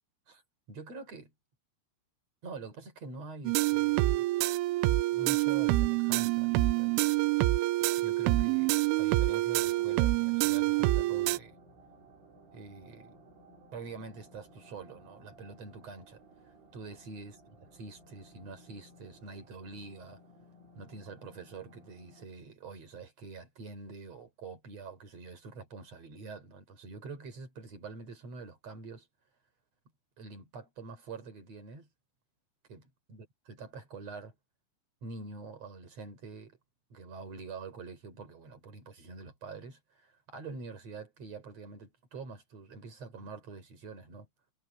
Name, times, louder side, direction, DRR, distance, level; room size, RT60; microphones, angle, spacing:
voice 1, 0.7-1.3 2.4-4.3 5.1-6.9 8.0-11.6 12.5-13.3 13.7-17.4 17.8-20.2 20.8-29.1 30.2-31.9 32.7-34.3 35.0-36.6 36.9-44.3, right 4 dB, 30° right, 5.4 m, -46 dB
sound 1, 3.5-11.4, right 18 dB, 85° right, 3.1 m, -27 dB
sound 2, 9.5-22.3, right 1 dB, 70° right, 8.7 m, -58 dB
omnidirectional pair, 5.9 m